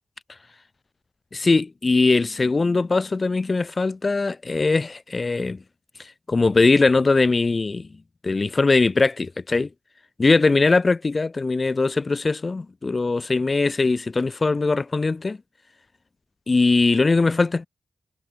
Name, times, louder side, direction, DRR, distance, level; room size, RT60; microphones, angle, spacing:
voice 1, 1.3-5.6 6.0-7.9 8.2-9.7 10.2-15.4 16.5-17.7, left 3 dB, 40° left, 6.1 m, -21 dB
wide cardioid pair, 90°, 0 cm